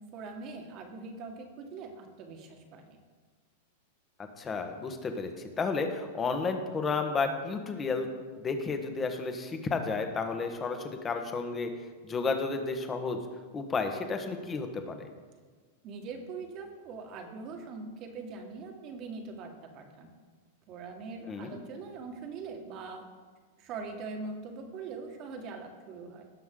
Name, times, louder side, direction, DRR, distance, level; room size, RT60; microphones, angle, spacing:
voice 1, 0.1-3.0 15.8-20.1 20.7-23.0 23.6-26.2, right 4 dB, 40° right, 3 dB, 1.8 m, -42 dB
voice 2, 4.4-5.3 5.6-11.7 12.0-13.2 13.5-15.1 21.3-21.5, left 4 dB, 20° left, 6 dB, 1.3 m, -32 dB
18.0 x 6.1 x 3.8 m, 1.5 s
hypercardioid pair, 130°, 0 cm